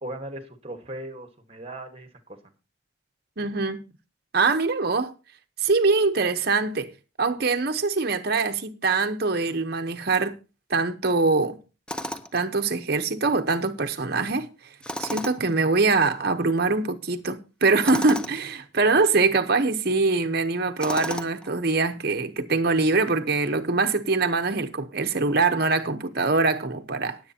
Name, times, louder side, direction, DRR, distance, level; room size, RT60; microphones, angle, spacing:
voice 1, 0.0-2.4, right 1 dB, 30° right, 1.5 m, -38 dB
voice 2, 3.4-3.8 4.3-5.1 5.6-6.9 7.2-10.3 10.7-11.6 12.3-14.5 15.0-27.2, right 3 dB, 50° right, 0.9 m, -23 dB
Tools, 11.9-12.4 14.8-15.6 17.8-18.4 20.8-21.5, equal, 5° left, 0.6 m, -33 dB
20.0 x 7.9 x 2.8 m
head